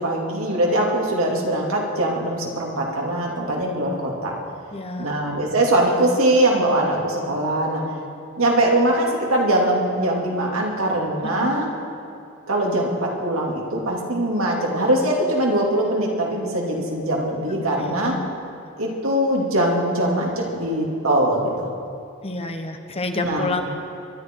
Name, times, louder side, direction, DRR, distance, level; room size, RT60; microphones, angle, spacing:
voice 1, 0.0-4.3 5.0-7.8 8.4-11.7 12.5-18.2 18.8-21.7 23.2-23.5, right 1 dB, 75° right, -1 dB, 2.7 m, -22 dB
voice 2, 4.7-5.2 11.2-11.5 17.5-18.2 22.2-23.6, left 2 dB, 30° left, 5 dB, 1.1 m, -29 dB
24.5 x 11.5 x 4.7 m, 2.7 s
head